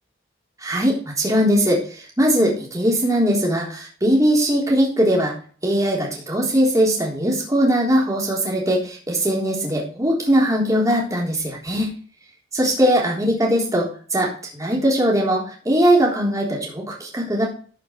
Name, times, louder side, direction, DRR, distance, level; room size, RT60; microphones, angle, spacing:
voice 1, 0.6-5.3 5.6-11.9 12.5-17.4, equal, 20° right, -3 dB, 3.7 m, -20 dB
13.5 x 6.0 x 4.7 m, 0.42 s
head